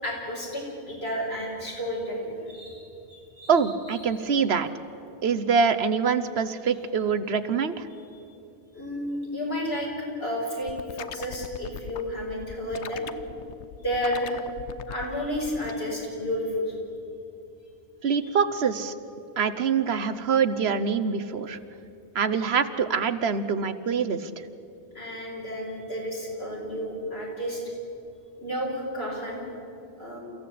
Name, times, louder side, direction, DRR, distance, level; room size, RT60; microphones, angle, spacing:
voice 1, 0.0-3.5 8.7-9.9 10.2-13.1 13.8-14.4 14.9-16.7 24.9-27.6 28.4-29.4 30.0-30.2, equal, 65° left, -3 dB, 5.9 m, -31 dB
voice 2, 3.5-4.7 5.2-7.9 18.0-18.9 19.4-21.6 22.1-24.3, right 6 dB, 70° right, 12 dB, 1.2 m, -24 dB
sound 1, 10.6-15.7, left 9 dB, 90° left, 1.1 m, -40 dB
29.5 x 15.0 x 8.6 m, 2.8 s
omnidirectional pair, 1.1 m